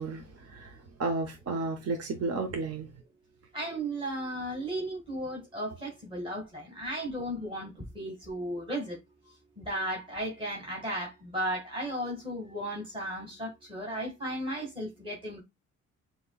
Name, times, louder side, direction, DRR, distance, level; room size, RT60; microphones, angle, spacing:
voice 1, 0.0-2.9, right 3 dB, 55° right, 1.0 m, -33 dB
voice 2, 3.5-9.0 9.6-15.4, right 1 dB, 15° right, 2.1 m, -35 dB
6.8 x 3.1 x 2.4 m
cardioid pair, 90°, 30 cm